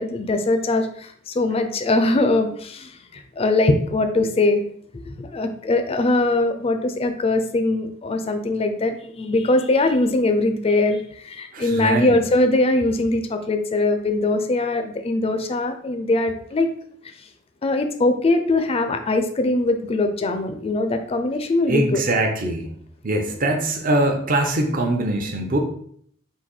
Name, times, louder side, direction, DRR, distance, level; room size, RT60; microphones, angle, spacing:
voice 1, 0.0-2.9 3.4-4.6 5.1-16.7 17.6-22.0, left 2 dB, 30° left, 7 dB, 0.4 m, -21 dB
voice 2, 11.5-12.2 21.7-22.7 23.0-25.6, right 1 dB, 45° right, 3 dB, 0.6 m, -22 dB
3.9 x 2.6 x 4.3 m, 0.62 s
head